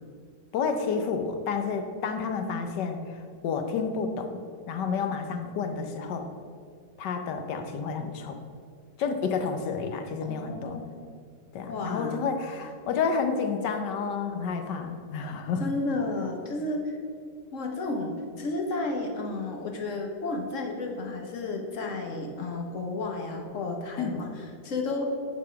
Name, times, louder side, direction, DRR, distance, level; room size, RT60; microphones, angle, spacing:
voice 1, 0.5-4.4 4.7-6.3 7.0-8.4 9.0-10.8 11.5-15.6 24.0-24.2, left 5 dB, 75° left, 6 dB, 1.3 m, -30 dB
voice 2, 10.3-11.1 11.6-12.2 15.6-17.0 17.5-25.0, left 2 dB, 50° left, 2 dB, 1.2 m, -32 dB
10.5 x 4.2 x 5.6 m, 2.2 s
omnidirectional pair, 1.9 m